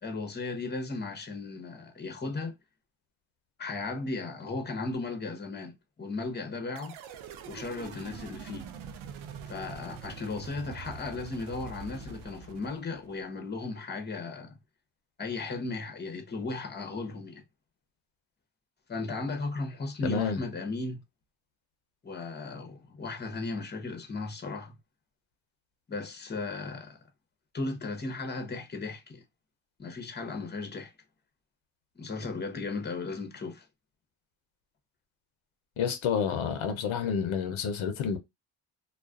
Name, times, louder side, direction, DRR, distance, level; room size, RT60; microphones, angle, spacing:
voice 1, 0.0-2.5 3.6-7.0 7.5-8.7 9.5-14.6 15.2-17.4 18.9-21.0 22.0-24.7 25.9-27.0 27.5-29.2 29.8-30.9 32.0-33.7, left 3 dB, 20° left, 0.8 m, -36 dB
sound 1, 6.8-13.2, right 7 dB, 90° right, 0.5 m, -44 dB
voice 2, 20.0-20.4 35.8-38.2, left 7 dB, 80° left, 0.7 m, -29 dB
2.3 x 2.3 x 2.3 m
cardioid pair, 65°, 47 cm